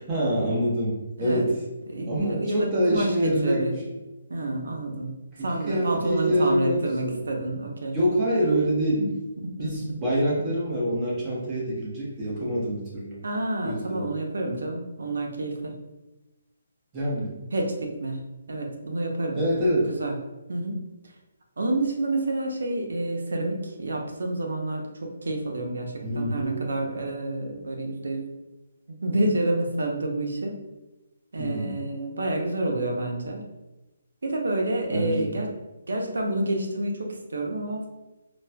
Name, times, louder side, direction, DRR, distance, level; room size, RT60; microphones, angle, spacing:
voice 1, 0.0-1.5 2.1-3.6 5.3-7.1 7.9-9.1 9.6-13.2 13.6-14.1 16.9-17.3 19.4-19.9 26.0-26.6 31.4-31.8 34.9-35.4, equal, 15° right, -7 dB, 0.8 m, -26 dB
voice 2, 1.9-3.7 4.3-8.0 9.0-9.1 9.4-9.7 13.2-15.7 17.5-18.2 18.5-19.4 19.9-20.2 20.5-20.8 21.6-28.3 29.0-30.5 31.3-33.5 34.2-35.5 35.9-37.9, right 2 dB, 90° right, 1 dB, 0.7 m, -28 dB
4.1 x 2.2 x 2.2 m, 1.0 s
hypercardioid pair, 165°, 0 cm